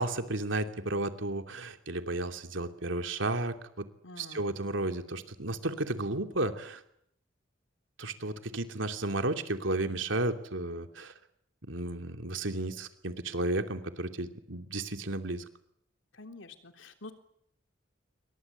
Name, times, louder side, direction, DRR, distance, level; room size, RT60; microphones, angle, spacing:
voice 1, 0.0-3.9 4.2-6.8 8.0-11.1 11.7-15.4, right 2 dB, 85° right, 6 dB, 2.8 m, -33 dB
voice 2, 4.0-4.6 16.2-17.1, left 2 dB, 80° left, 6 dB, 3.4 m, -47 dB
28.5 x 24.0 x 8.4 m, 0.72 s
head